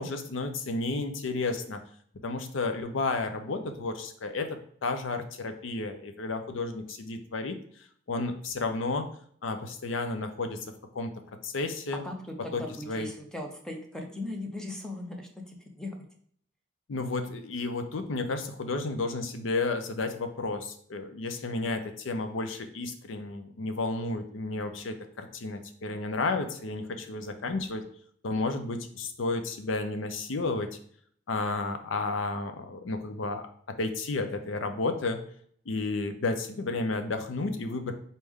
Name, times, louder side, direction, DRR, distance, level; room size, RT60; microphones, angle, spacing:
voice 1, 0.0-1.8 2.2-7.6 8.1-9.1 9.4-10.7 10.9-11.1 11.4-12.0 12.5-13.1 16.9-27.8 28.2-30.7 31.3-33.4 33.8-35.2 35.7-37.9, left 3 dB, 85° left, 7 dB, 0.6 m, -32 dB
voice 2, 12.0-16.0, left 1 dB, 5° left, 2 dB, 0.6 m, -38 dB
4.1 x 3.3 x 3.6 m, 0.62 s
head